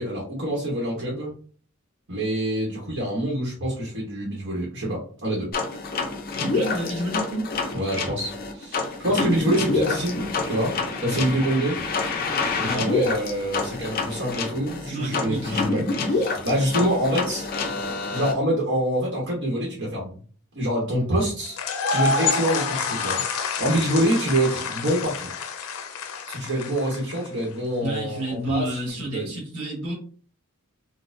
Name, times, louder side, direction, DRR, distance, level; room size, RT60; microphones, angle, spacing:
voice 1, 0.0-1.3 2.1-5.5 7.7-10.8 11.0-11.8 12.6-17.5 18.1-20.2 20.5-21.6 21.9-23.2 23.5-25.3 26.3-29.3, right 1 dB, 60° right, -4 dB, 1.0 m, -26 dB
sound 1, 5.5-18.3, left 3 dB, 45° left, 0.6 m, -27 dB
voice 2, 6.4-7.5 12.6-12.8 14.9-15.5 27.8-29.9, right 1 dB, 90° right, -3 dB, 1.4 m, -30 dB
sound 2, 21.5-27.4, left 4 dB, 85° left, 0.5 m, -28 dB
4.0 x 2.1 x 2.6 m, 0.43 s
head